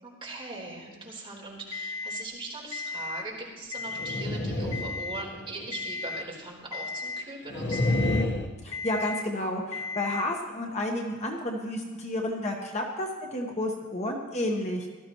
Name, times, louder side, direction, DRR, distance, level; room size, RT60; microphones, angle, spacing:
voice 1, 0.0-7.9, right 2 dB, 25° right, -4 dB, 3.8 m, -40 dB
Alarm, 1.7-2.3 2.7-3.3 3.7-4.3 4.7-5.3 5.7-6.3 6.7-7.3 7.7-8.3 8.7-9.3 9.7-10.3, left 4 dB, 85° left, 0.7 m, -35 dB
sound 1, 3.9-5.7 7.5-8.5, left 1 dB, 55° left, 1.3 m, -28 dB
voice 2, 8.6-14.9, left 1 dB, 35° left, 1 dB, 1.2 m, -31 dB
18.0 x 13.0 x 3.1 m, 1.3 s
head